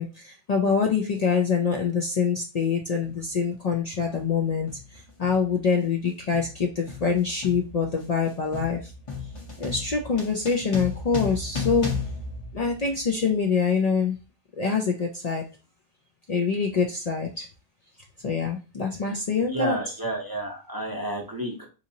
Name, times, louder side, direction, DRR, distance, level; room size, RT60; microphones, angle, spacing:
voice 1, 0.0-8.9 9.6-11.9 12.5-14.2 14.6-15.4 16.3-17.5 18.2-19.8, left 5 dB, 50° left, 1 dB, 0.5 m, -25 dB
sound 1, 3.0-3.2 4.1-4.4 4.7-13.2, left 5 dB, 30° left, 0.9 m, -35 dB
voice 2, 19.5-21.7, right 1 dB, 25° right, 0 dB, 0.6 m, -30 dB
3.8 x 2.9 x 2.7 m, 0.31 s
omnidirectional pair, 1.0 m